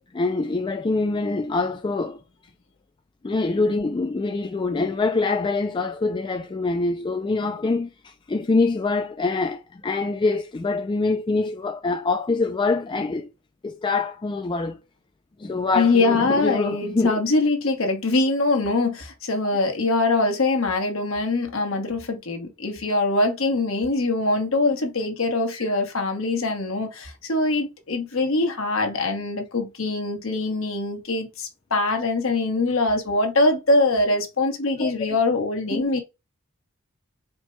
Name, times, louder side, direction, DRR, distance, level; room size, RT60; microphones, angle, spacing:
voice 1, 0.1-2.2 3.2-13.3 13.6-14.8 15.4-17.2 25.5-25.7 34.8-34.9 35.7-36.0, left 3 dB, 20° left, 0.3 m, -25 dB
voice 2, 15.7-36.0, left 2 dB, 65° left, 1.1 m, -23 dB
4.4 x 2.2 x 4.4 m
head